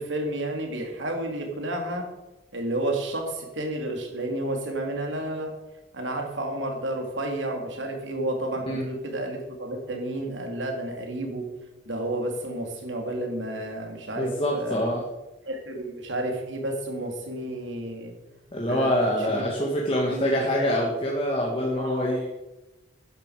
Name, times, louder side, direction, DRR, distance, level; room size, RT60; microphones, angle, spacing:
voice 1, 0.0-2.1 2.5-5.5 5.9-11.4 11.8-14.8 15.4-18.1 18.7-19.4 20.0-20.8 21.8-22.1, right 1 dB, 85° right, 2 dB, 3.3 m, -31 dB
voice 2, 14.2-15.0 18.5-22.3, equal, 30° left, -3 dB, 2.2 m, -25 dB
14.5 x 11.0 x 5.1 m, 1.0 s
head